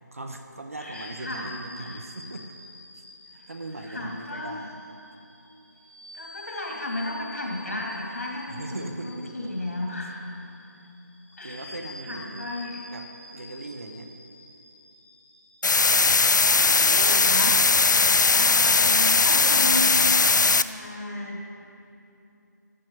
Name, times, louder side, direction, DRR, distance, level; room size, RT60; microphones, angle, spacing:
voice 1, 0.1-2.5 3.3-4.7 8.5-9.3 11.4-12.5 12.9-14.1, right 2 dB, 45° right, 5 dB, 0.8 m, -39 dB
voice 2, 0.8-2.0 3.4-3.5 3.8-4.7 6.1-10.2 11.4-12.9 16.5-17.6 18.3-20.2 20.6-21.5, left 1 dB, 50° left, -1 dB, 2.4 m, -34 dB
sound 1, 0.9-17.5, left 2 dB, 35° left, 1.2 m, -48 dB
sound 2, 15.6-20.6, left 4 dB, 70° left, 0.4 m, -19 dB
14.0 x 9.2 x 4.5 m, 2.8 s
figure-of-eight pair, 180°, 10 cm